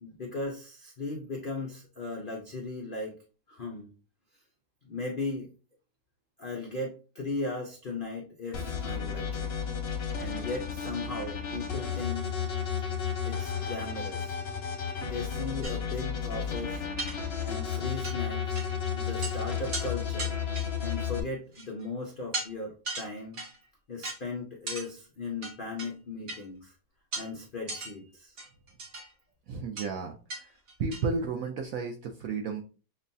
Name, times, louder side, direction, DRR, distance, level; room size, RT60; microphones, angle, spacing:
voice 1, 0.0-3.2 3.5-3.9 4.9-5.5 6.4-9.5 10.2-12.3 13.2-14.4 15.0-16.8 17.4-18.6 19.0-20.4 20.8-23.4 23.9-26.7 27.2-28.4, left 3 dB, 80° left, 0 dB, 0.4 m, -37 dB
sound 1, 8.5-21.2, left 7 dB, 50° left, 0.7 m, -33 dB
sound 2, 15.6-15.8 16.4-16.5 17.0-17.6 18.0-18.2 18.5-18.7 19.0-19.3 19.7-19.9 20.2-20.9 21.5-21.8 22.3-22.5 22.8-23.6 24.0-24.2 24.7-24.9 25.4-25.9 26.3-26.4 27.1-27.3 27.7-27.9 28.4-29.1 29.8-29.9 30.3-30.4 30.7-31.1, right 2 dB, 45° right, 1.3 m, -36 dB
voice 2, 29.5-30.5 30.8-32.6, right 4 dB, 75° right, 4 dB, 0.8 m, -33 dB
6.1 x 2.2 x 2.6 m, 0.35 s
omnidirectional pair, 1.9 m